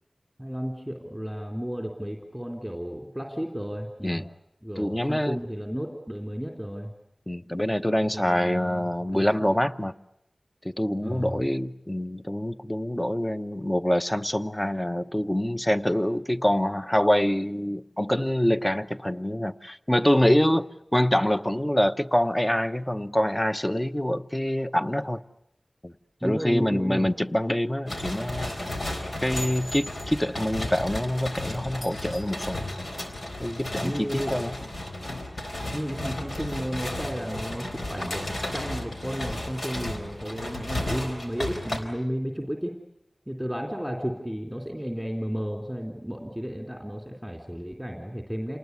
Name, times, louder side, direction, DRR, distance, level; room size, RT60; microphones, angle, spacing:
voice 1, 0.4-4.2 4.6-6.9 8.1-8.9 9.1-9.5 11.0-11.4 26.2-27.1 33.8-34.7 35.7-42.8 43.3-48.6, equal, 5° right, 2 dB, 3.5 m, -33 dB
voice 2, 4.8-5.4 7.3-9.9 10.6-20.6 20.9-25.2 25.8-25.9 26.2-28.5 29.2-32.6 32.9-33.0 33.4-34.6, left 1 dB, 15° left, 11 dB, 0.9 m, -25 dB
sound 1, 27.9-41.8, left 1 dB, 85° left, 4.1 m, -34 dB
28.5 x 20.0 x 9.6 m, 0.83 s
wide cardioid pair, 55°, 0 cm